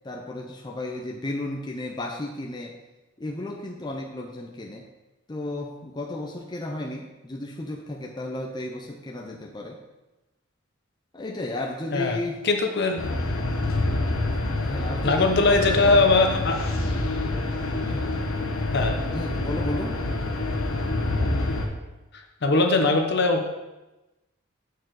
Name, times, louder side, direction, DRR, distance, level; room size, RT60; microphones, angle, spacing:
voice 1, 0.0-2.8 3.2-4.9 5.3-9.8 11.1-12.4 14.3-16.1 17.8-18.1 19.1-20.0, left 2 dB, 20° left, -1 dB, 0.5 m, -33 dB
voice 2, 12.5-13.0 15.0-16.7 18.7-19.1 22.4-23.5, left 3 dB, 50° left, 4 dB, 0.8 m, -21 dB
sound 1, 13.0-21.7, left 2 dB, 85° left, 1.1 m, -27 dB
8.2 x 4.6 x 4.6 m, 1.1 s
head